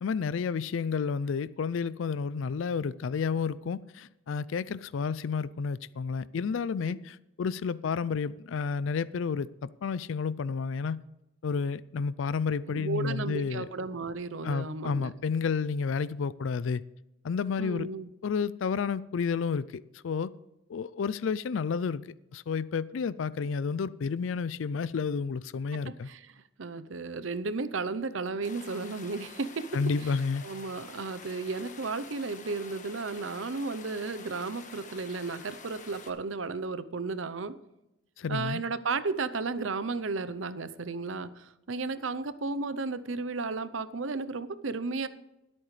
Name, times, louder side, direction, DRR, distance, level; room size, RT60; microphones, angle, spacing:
voice 1, 0.0-11.0 11.4-13.7 14.4-16.8 17.2-17.9 18.2-20.3 20.7-22.0 22.3-26.1 29.7-30.4 38.2-38.6, left 5 dB, 80° left, 18 dB, 0.4 m, -31 dB
voice 2, 12.7-15.1 17.6-18.1 25.7-26.2 26.6-29.7 30.4-37.6 38.3-45.1, right 4 dB, 85° right, 15 dB, 0.7 m, -34 dB
sound 1, 28.4-36.1, left 5 dB, 40° left, 1.3 m, -48 dB
21.5 x 8.6 x 3.3 m, 0.91 s
head